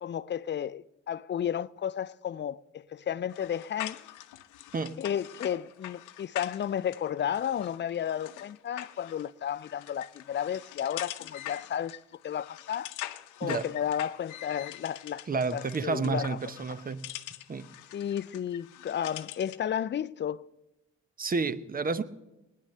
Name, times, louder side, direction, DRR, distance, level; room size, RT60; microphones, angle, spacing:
voice 1, 0.0-4.0 5.0-12.0 12.2-12.9 13.4-15.2 15.5-16.4 17.9-20.5, left 9 dB, 40° left, 0.5 m, -33 dB
sound 1, 3.3-19.7, left 14 dB, 85° left, 0.8 m, -44 dB
voice 2, 15.3-17.1 17.5-17.7 21.2-22.0, right 4 dB, 30° right, 0.9 m, -30 dB
18.0 x 10.5 x 6.6 m
cardioid pair, 90°, 30 cm